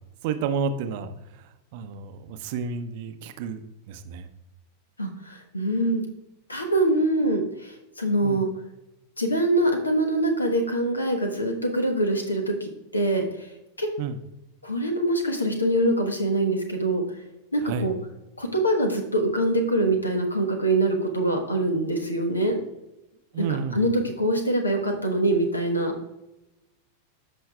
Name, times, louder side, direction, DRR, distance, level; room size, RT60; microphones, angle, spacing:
voice 1, 0.2-3.6 3.9-4.3 8.2-8.5 14.0-14.2 17.6-17.9 23.3-23.9, right 5 dB, 50° right, 9 dB, 0.6 m, -31 dB
voice 2, 5.0-6.0 6.5-8.5 9.2-13.5 13.8-13.9 14.6-17.0 17.5-17.9 18.4-22.6 23.4-23.5 23.7-25.9, right 1 dB, 80° left, 4 dB, 1.1 m, -24 dB
14.0 x 5.5 x 2.3 m, 0.94 s
figure-of-eight pair, 90°, 0 cm